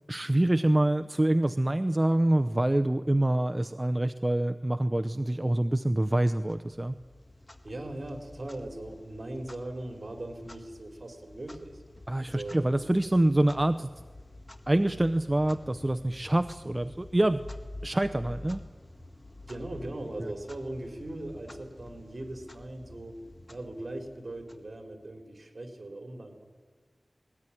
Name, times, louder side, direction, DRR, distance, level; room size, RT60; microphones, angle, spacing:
voice 1, 0.1-7.0 12.1-13.9 14.7-17.4 17.8-18.6 20.2-20.3, right 1 dB, 25° right, 9 dB, 0.7 m, -26 dB
Clock, 6.4-25.2, left 2 dB, 25° left, 1.8 m, -49 dB
voice 2, 7.6-11.8 12.3-12.6 19.5-23.2 23.5-26.4, right 1 dB, 50° right, 4 dB, 3.9 m, -39 dB
20.0 x 18.5 x 10.0 m, 1.5 s
wide cardioid pair, 60°, 0 cm